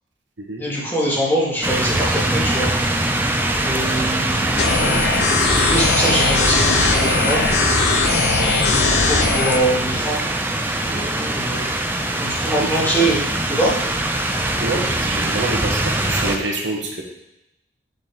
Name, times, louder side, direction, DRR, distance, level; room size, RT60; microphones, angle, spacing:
voice 1, 0.6-2.7 3.6-5.0 5.5-7.4 9.0-10.2 10.8-11.7 12.2-13.2 13.5-13.7, right 1 dB, 10° left, -8 dB, 2.2 m, -23 dB
sound 1, 1.6-16.4, right 1 dB, 10° right, 0.5 m, -22 dB
sound 2, 4.6-9.6, left 4 dB, 55° left, 0.7 m, -19 dB
voice 2, 12.6-13.1 14.6-17.0, right 2 dB, 80° right, 0 dB, 1.4 m, -27 dB
6.6 x 6.5 x 3.7 m, 0.87 s
head